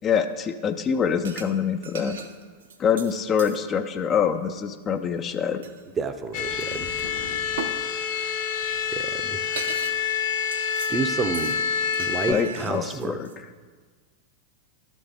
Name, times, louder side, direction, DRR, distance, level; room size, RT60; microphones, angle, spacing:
voice 1, 0.0-2.2 2.8-5.6 12.3-13.3, left 7 dB, 30° left, 8 dB, 0.4 m, -25 dB
sound 1, 1.2-1.5 1.8-3.6 5.6-5.8 7.6-7.8 8.9-9.0 9.2-10.0 10.3-10.9 11.3-11.6 11.9-13.4, right 6 dB, 70° right, 0.5 m, -38 dB
voice 2, 6.0-6.9 8.6-9.4 10.9-11.6 12.0-13.2, right 4 dB, 20° right, 9 dB, 0.5 m, -29 dB
sound 2, 6.3-12.3, left 7 dB, 55° left, 0.9 m, -27 dB
12.0 x 4.1 x 3.4 m, 1.5 s
figure-of-eight pair, 90°, 0 cm